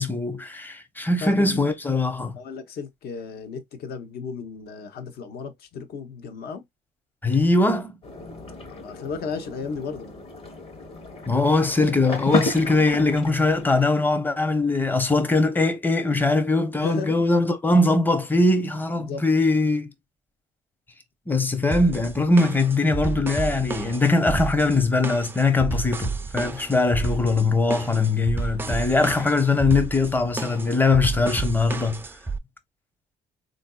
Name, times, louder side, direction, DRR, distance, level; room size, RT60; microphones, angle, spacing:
voice 1, 0.0-2.3 7.2-7.9 11.3-19.9 21.3-32.0, left 3 dB, 10° left, 0.7 m, -21 dB
voice 2, 1.2-1.7 2.3-6.6 8.7-10.1 16.8-17.1 19.0-19.3, left 5 dB, 65° left, 0.9 m, -34 dB
sound 1, 8.0-13.8, left 1 dB, 35° left, 1.0 m, -33 dB
sound 2, 21.7-32.4, right 4 dB, 15° right, 0.3 m, -31 dB
3.9 x 2.6 x 2.3 m
cardioid pair, 110°, 17 cm